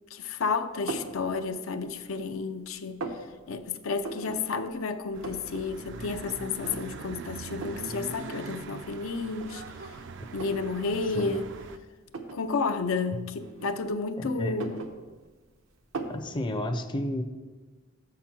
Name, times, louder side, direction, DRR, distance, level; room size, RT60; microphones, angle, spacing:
voice 1, 0.1-10.0 10.3-11.5 12.3-14.8, left 4 dB, 80° left, 0.5 m, -31 dB
sound 1, 0.9-1.2 1.7-2.4 2.7-3.2 4.0-4.4 4.7-4.8 5.0-5.6 6.0-6.1 6.6-7.1 7.6-7.9 8.7-8.8 9.3-10.7 11.1-11.3 12.1-12.4 13.4-14.1 14.4-15.5 15.9-16.3, right 3 dB, 85° right, 0.8 m, -38 dB
sound 2, 5.1-11.8, right 4 dB, 60° right, 0.4 m, -42 dB
voice 2, 14.2-14.5 16.1-17.2, left 1 dB, 25° left, 0.5 m, -31 dB
6.7 x 5.8 x 5.9 m
head